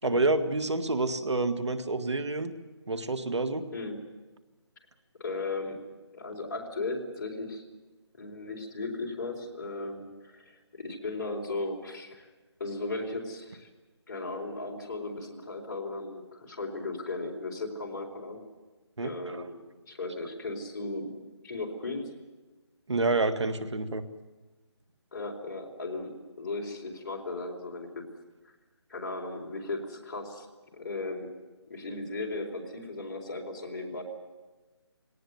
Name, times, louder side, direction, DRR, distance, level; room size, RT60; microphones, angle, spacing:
voice 1, 0.0-2.5 2.9-3.6 19.0-19.5 22.9-24.0, right 2 dB, 80° right, 10 dB, 1.8 m, -28 dB
voice 2, 5.2-5.8 6.1-7.6 8.2-12.3 12.6-13.7 14.1-18.4 19.0-19.6 19.8-21.2 21.4-22.1 25.1-28.0 28.9-30.5 30.7-31.3 31.7-34.0, left 3 dB, 40° left, 1 dB, 4.4 m, -36 dB
20.0 x 18.5 x 9.4 m, 1.2 s
figure-of-eight pair, 165°, 15 cm